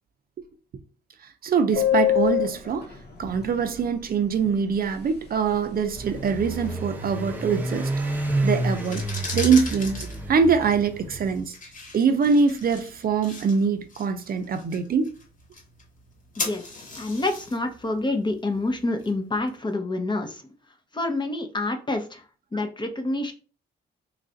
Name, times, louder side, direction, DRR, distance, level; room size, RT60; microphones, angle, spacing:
voice 1, 1.4-2.9 3.2-7.9 8.4-9.0 9.3-11.6 11.9-15.1 22.5-22.7, right 5 dB, 55° right, 0.5 m, -23 dB
Subway metro underground, 1.7-3.9 4.2-4.3 4.5-4.7 5.0-5.5 5.7-6.7, left 11 dB, 60° left, 0.8 m, -25 dB
sound 1, 6.0-11.4, right 1 dB, 10° right, 0.7 m, -29 dB
sound 2, 8.7-19.5, left 3 dB, 45° left, 1.1 m, -39 dB
voice 2, 16.4-20.5 20.9-22.2 22.5-23.3, left 2 dB, 25° left, 0.7 m, -28 dB
3.2 x 2.5 x 3.9 m
cardioid pair, 100°, 19 cm